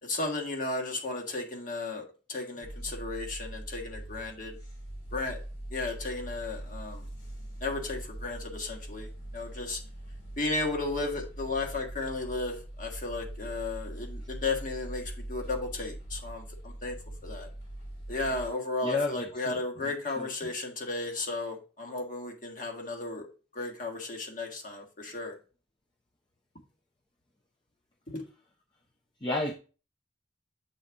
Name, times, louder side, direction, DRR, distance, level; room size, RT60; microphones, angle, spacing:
voice 1, 0.0-4.6 5.1-5.4 5.7-7.1 7.6-9.8 10.4-17.0 17.2-17.5 18.1-23.3 23.5-25.3 28.1-28.2, left 3 dB, 45° left, 2 dB, 1.5 m, -34 dB
sound 1, 2.6-18.5, right 1 dB, 65° left, 3.5 m, -42 dB
voice 2, 18.8-20.3 29.2-29.6, left 2 dB, 25° left, 1 dB, 0.6 m, -32 dB
7.6 x 4.0 x 3.5 m, 0.35 s
head